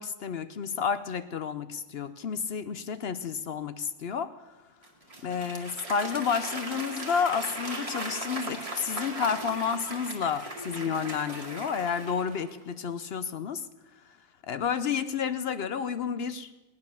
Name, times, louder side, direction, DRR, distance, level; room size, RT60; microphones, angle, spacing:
voice 1, 0.0-4.4 5.2-13.7 14.5-16.5, left 6 dB, 60° left, 13 dB, 0.6 m, -31 dB
Applause / Crowd, 4.8-12.6, right 2 dB, 20° right, 2.0 m, -38 dB
18.5 x 9.7 x 6.9 m, 1.1 s
omnidirectional pair, 1.7 m